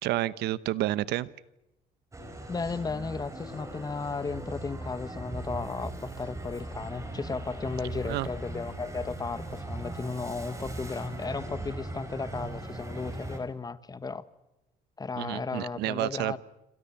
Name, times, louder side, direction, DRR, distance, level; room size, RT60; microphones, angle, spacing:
voice 1, 0.0-1.3 8.0-8.3 15.2-16.4, right 15 dB, 80° right, 0.9 m, -30 dB
sound 1, 2.1-13.4, right 1 dB, 20° right, 4.9 m, -39 dB
voice 2, 2.5-14.2 15.0-16.4, left 4 dB, 20° left, 1.2 m, -35 dB
27.5 x 26.0 x 7.2 m
cardioid pair, 110°, 17 cm